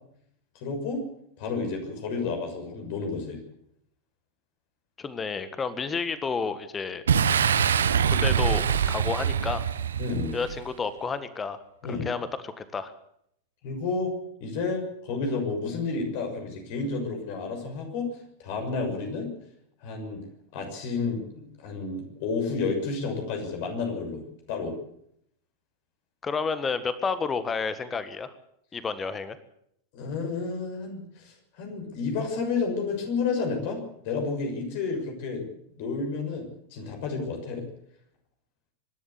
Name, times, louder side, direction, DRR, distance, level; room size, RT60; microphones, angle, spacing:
voice 1, 0.6-1.0 1.4-3.4 10.0-10.4 11.8-12.1 13.6-14.1 14.4-18.1 18.4-19.3 19.8-20.2 20.5-24.2 24.5-24.7 29.9-35.5 35.8-37.6, left 4 dB, 50° left, 3 dB, 6.6 m, -31 dB
voice 2, 5.0-7.0 8.1-9.7 10.3-11.6 11.9-12.9 26.2-28.3 28.7-29.4, left 5 dB, 20° left, 13 dB, 1.6 m, -30 dB
Boom, 7.1-10.7, right 7 dB, 65° right, 1.0 m, -24 dB
25.0 x 12.5 x 8.3 m, 0.71 s
figure-of-eight pair, 90°, 0 cm